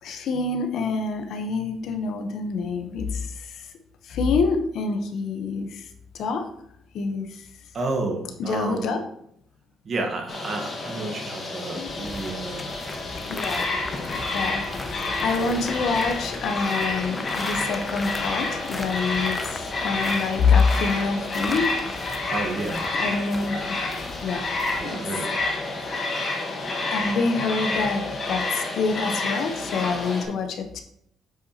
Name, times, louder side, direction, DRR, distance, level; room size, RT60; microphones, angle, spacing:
voice 1, 0.0-3.7 4.0-5.9 6.1-6.5 6.9-7.5 8.4-9.0 11.7-11.9 13.3-13.7 14.3-21.7 23.0-23.8 24.2-25.0 26.9-30.8, left 4 dB, 65° left, 5 dB, 0.9 m, -26 dB
voice 2, 7.7-8.9 9.8-12.7 22.3-22.9 24.8-25.3 25.8-25.9, right 3 dB, 45° right, 2 dB, 1.3 m, -30 dB
sound 1, 10.3-30.2, left 2 dB, 40° left, 1.6 m, -29 dB
sound 2, 11.9-24.8, left 2 dB, 20° left, 0.6 m, -38 dB
7.7 x 5.7 x 2.9 m, 0.71 s
cardioid pair, 130°, 0 cm